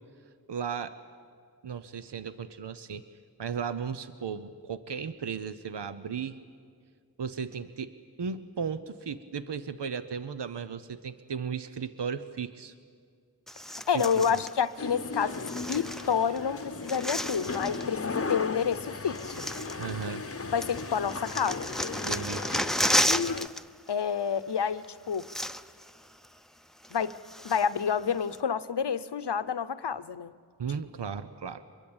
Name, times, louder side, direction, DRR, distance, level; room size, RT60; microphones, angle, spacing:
voice 1, 0.5-1.0 1.6-3.0 3.4-6.4 7.2-12.7 13.9-14.4 19.8-20.3 22.0-22.4 30.6-31.6, right 6 dB, 85° right, 12 dB, 0.8 m, -35 dB
sound 1, 13.5-14.5 15.3-16.4 16.6-17.9 18.7-18.8 19.1-20.3 20.6-23.6 23.9-24.1 24.8-24.9 25.1-25.9 26.2-26.3 26.8-27.8 28.3-28.4, equal, ahead, 0.6 m, -32 dB
voice 2, 13.9-19.5 20.4-21.7 23.9-25.3 26.9-27.1 27.4-30.3, left 7 dB, 80° left, 15 dB, 0.8 m, -29 dB
sound 2, 14.8-23.5, left 4 dB, 35° left, 0.8 m, -36 dB
24.5 x 22.0 x 8.8 m, 2.1 s
wide cardioid pair, 50°, 41 cm